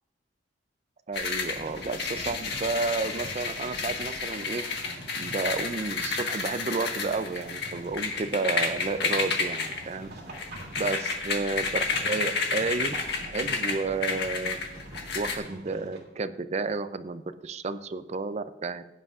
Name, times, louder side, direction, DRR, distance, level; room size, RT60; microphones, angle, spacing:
sound 1, 1.1-15.4, left 4 dB, 60° left, 1.5 m, -31 dB
voice 1, 1.1-4.7 5.2-10.1 10.8-12.9 13.2-14.6 15.1-18.8, right 3 dB, 35° right, 12 dB, 0.4 m, -31 dB
sound 2, 1.5-16.0, right 1 dB, 55° right, 2.6 m, -46 dB
16.5 x 9.8 x 2.5 m, 0.98 s
head